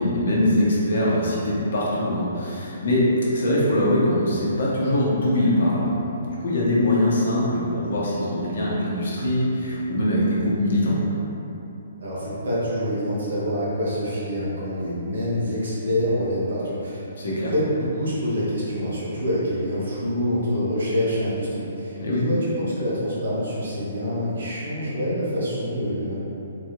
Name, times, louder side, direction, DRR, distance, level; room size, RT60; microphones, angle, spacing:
voice 1, 0.0-11.0 17.2-17.5 22.0-22.2, left 1 dB, 60° left, -6 dB, 0.8 m, -22 dB
voice 2, 12.0-17.0 17.4-21.5 21.8-26.1, equal, 65° right, -8 dB, 1.1 m, -26 dB
3.9 x 2.9 x 2.4 m, 2.9 s
figure-of-eight pair, 125°, 0 cm